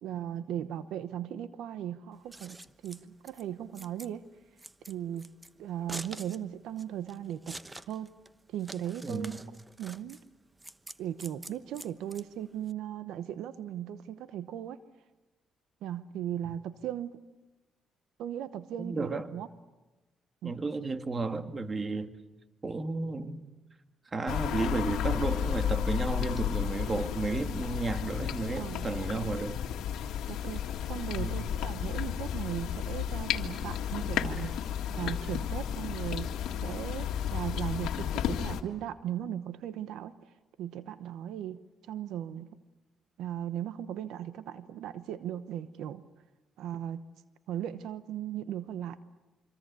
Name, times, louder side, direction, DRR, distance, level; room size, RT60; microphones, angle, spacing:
voice 1, 0.0-2.6 2.8-4.2 4.9-5.3 5.6-7.6 7.9-8.1 8.5-9.4 9.8-10.2 11.0-14.8 15.8-17.2 18.2-19.5 20.4-20.6 28.6-28.9 30.3-34.5 34.9-36.3 36.6-40.1 40.6-41.6 41.9-42.5 43.2-46.0 46.6-47.0 47.5-49.0, right 10 dB, 85° right, 0.9 m, -37 dB
Scissors, 2.1-12.7, right 2 dB, 15° right, 1.0 m, -47 dB
voice 2, 9.0-9.4 18.8-19.3 20.4-22.1 22.6-23.5 24.1-29.6 31.2-31.5, right 3 dB, 30° right, 2.0 m, -33 dB
sound 1, 24.3-38.6, left 9 dB, 80° left, 1.8 m, -33 dB
25.5 x 25.5 x 8.4 m
cardioid pair, 90°, 0 cm